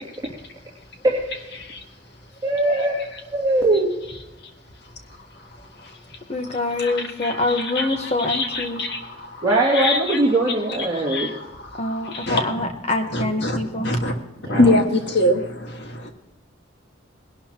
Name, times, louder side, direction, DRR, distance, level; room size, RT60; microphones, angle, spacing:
voice 1, 1.0-1.5 2.4-3.0 3.3-3.9 9.4-11.3 14.4-14.7, right 2 dB, 20° right, 2.5 m, -21 dB
voice 2, 2.4-2.9 3.5-3.8 6.3-8.8 11.8-14.1, left 2 dB, 30° left, 1.2 m, -26 dB
voice 3, 7.2-9.5 9.7-10.2 10.8-12.4 13.1-13.6 13.8-14.1 14.5-16.1, left 1 dB, 55° left, 1.7 m, -24 dB
20.0 x 12.0 x 3.0 m
head